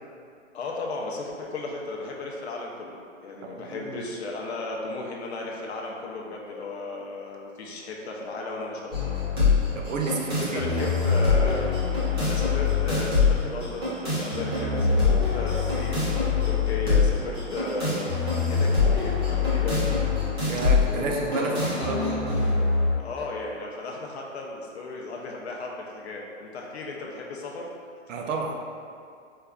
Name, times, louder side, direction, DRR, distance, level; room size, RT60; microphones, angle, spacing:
voice 1, 0.5-9.1 10.4-11.7 12.2-20.0 20.9-22.1 23.0-27.7, left 2 dB, 55° left, -1 dB, 0.6 m, -35 dB
voice 2, 3.4-4.0 9.7-10.9 20.5-22.0 28.1-28.6, right 3 dB, 80° right, 1 dB, 0.6 m, -31 dB
sound 1, 8.9-22.9, left 4 dB, 20° right, 0.6 m, -24 dB
4.5 x 2.5 x 2.2 m, 2.4 s
hypercardioid pair, 170°, 38 cm